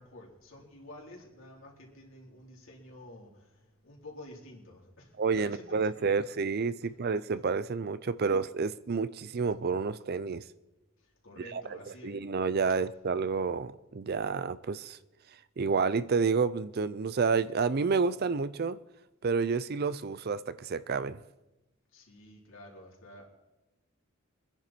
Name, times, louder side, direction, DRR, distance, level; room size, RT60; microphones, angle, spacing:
voice 1, 0.0-6.3 6.8-6.9 8.1-8.2 11.0-12.2 21.9-23.3, left 1 dB, 65° left, 3.7 m, -50 dB
voice 2, 5.2-10.4 11.5-11.6 12.0-15.0 15.6-18.8 19.2-21.2, right 5 dB, 45° right, 0.5 m, -29 dB
24.5 x 10.5 x 4.4 m
head